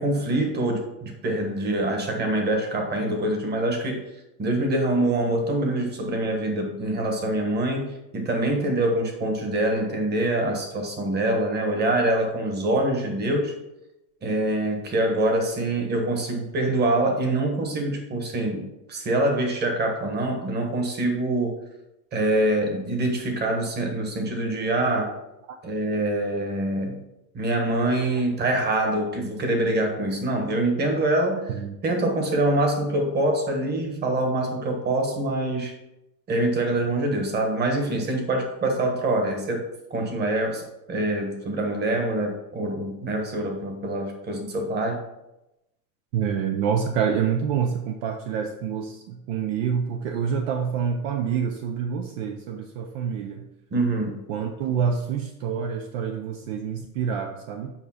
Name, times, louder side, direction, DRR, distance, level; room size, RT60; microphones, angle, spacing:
voice 1, 0.0-4.0 4.4-13.5 14.2-21.6 22.1-25.1 25.6-27.0 27.3-31.5 31.8-35.7 36.3-40.6 40.9-45.0 53.7-54.2, right 1 dB, 20° right, 3 dB, 1.4 m, -25 dB
voice 2, 46.1-53.4 54.3-57.7, right 7 dB, 55° right, 5 dB, 0.7 m, -27 dB
7.3 x 5.1 x 4.3 m, 0.91 s
supercardioid pair, 145°, 46 cm